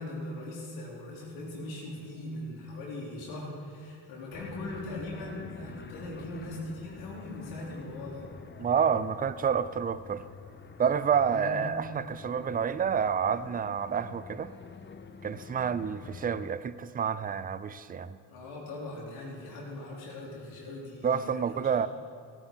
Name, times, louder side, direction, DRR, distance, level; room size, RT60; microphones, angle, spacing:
voice 1, 0.0-8.3 11.3-11.8 18.3-21.9, left 1 dB, 90° left, 3.6 m, -40 dB
sound 1, 4.3-16.5, left 5 dB, 25° left, 0.8 m, -48 dB
voice 2, 8.6-10.2 10.8-14.5 15.2-18.2 21.0-21.9, right 7 dB, 20° right, 0.4 m, -29 dB
16.0 x 10.0 x 4.6 m
supercardioid pair, 80°, 46 cm